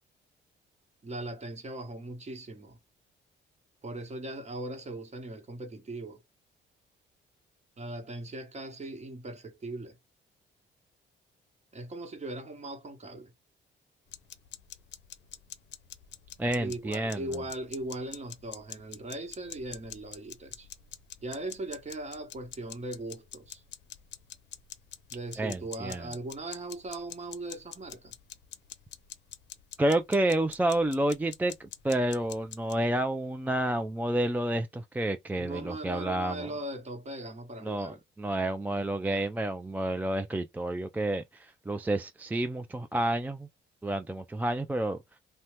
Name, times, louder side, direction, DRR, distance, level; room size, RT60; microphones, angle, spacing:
voice 1, 1.0-2.8 3.8-6.2 7.8-10.0 11.7-13.3 16.6-20.7 21.2-23.6 25.1-28.1 35.3-38.0, right 2 dB, 35° right, 1.2 m, -39 dB
sound 1, 14.1-32.7, left 10 dB, 60° left, 0.6 m, -47 dB
voice 2, 16.4-17.4 25.4-26.1 29.8-36.5 37.6-43.5 43.8-45.0, right 1 dB, 10° right, 0.3 m, -30 dB
2.8 x 2.1 x 3.1 m
cardioid pair, 90°, 20 cm